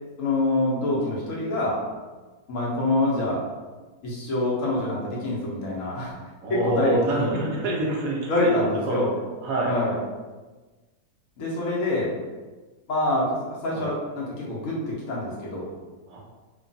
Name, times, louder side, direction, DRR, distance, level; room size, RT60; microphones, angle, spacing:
voice 1, 0.2-1.8 2.5-3.4 4.0-6.1 6.5-7.3 8.3-9.1 9.7-9.9 11.4-12.1 12.9-15.7, left 2 dB, 60° left, -5 dB, 0.8 m, -26 dB
voice 2, 6.4-8.5 8.8-9.0 9.4-9.7 13.7-13.9 16.1-16.2, right 1 dB, 65° right, -3 dB, 0.9 m, -26 dB
3.0 x 2.2 x 2.5 m, 1.3 s
omnidirectional pair, 2.0 m